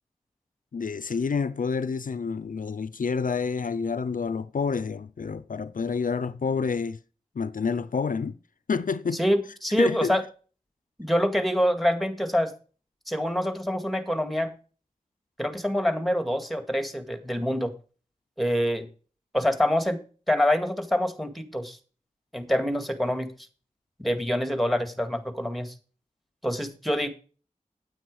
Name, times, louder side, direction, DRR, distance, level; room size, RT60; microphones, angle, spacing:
voice 1, 0.7-7.0 7.4-8.4 8.7-9.2 9.8-10.1, left 5 dB, 70° left, 0.5 m, -28 dB
voice 2, 9.1-10.2 11.0-12.5 13.1-14.5 15.4-17.7 18.4-18.9 19.3-20.0 20.3-21.8 22.3-23.3 24.0-25.7 26.4-27.1, equal, ahead, 2.0 m, -26 dB
9.1 x 9.0 x 4.8 m
wide cardioid pair, 50°, 14 cm